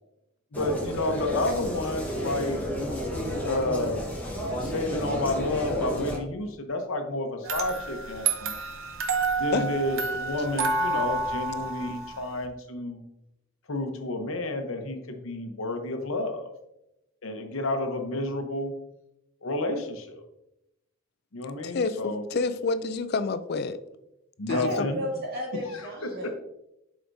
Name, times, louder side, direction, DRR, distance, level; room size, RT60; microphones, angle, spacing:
voice 1, 0.5-2.6 3.4-4.1 4.6-8.6 9.4-13.0 13.7-16.4 17.2-18.7 19.4-20.2 21.3-22.2 24.4-25.0 25.7-26.1, left 2 dB, 75° left, 5 dB, 0.9 m, -30 dB
sound 1, 0.5-6.2, equal, 10° left, 1.2 m, -31 dB
sound 2, 7.4-12.5, right 4 dB, 75° right, 0.8 m, -29 dB
voice 2, 21.6-23.8 24.5-24.9, left 4 dB, 50° left, 12 dB, 0.4 m, -28 dB
voice 3, 24.5-26.3, equal, 45° right, -4 dB, 2.2 m, -33 dB
7.8 x 5.0 x 2.6 m, 0.86 s
head